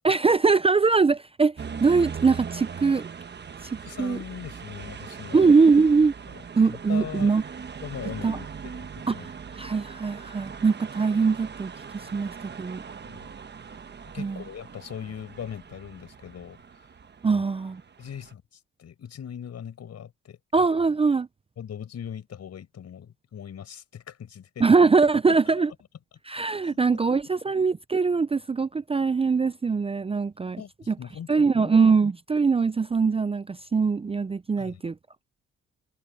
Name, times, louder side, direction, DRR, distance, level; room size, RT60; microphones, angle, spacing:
voice 1, 0.0-1.5 1.8-3.1 4.0-4.2 5.3-6.1 6.6-7.4 8.2-8.4 9.1-9.2 9.6-11.7 12.1-12.8 14.2-14.4 17.2-17.8 20.5-21.3 24.6-25.7 26.3-30.6 30.9-31.0 31.3-34.9, right 4 dB, 20° right, 0.5 m, -22 dB
sound 1, 1.6-18.3, right 6 dB, 35° right, 1.2 m, -40 dB
voice 2, 3.8-5.5 6.3-6.4 6.7-7.3 7.8-9.3 13.1-13.3 14.0-16.6 17.3-17.4 18.0-18.4 18.8-20.4 21.6-24.6 25.3-25.5 26.6-26.8 30.6-31.7 34.6-34.8, left 8 dB, 60° left, 5.3 m, -40 dB
cardioid pair, 90°, 30 cm